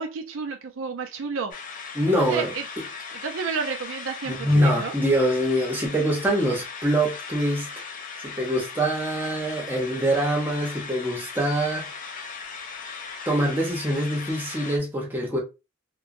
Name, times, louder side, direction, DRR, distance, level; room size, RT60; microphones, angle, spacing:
voice 1, 0.0-1.5 2.2-2.6 3.2-4.9, right 5 dB, 65° right, 0.4 m, -31 dB
sound 1, 1.5-14.8, left 5 dB, 40° left, 0.5 m, -38 dB
voice 2, 1.9-2.5 4.3-7.7 8.2-11.9 13.3-15.4, right 1 dB, 10° right, 0.7 m, -24 dB
3.0 x 2.2 x 2.5 m
head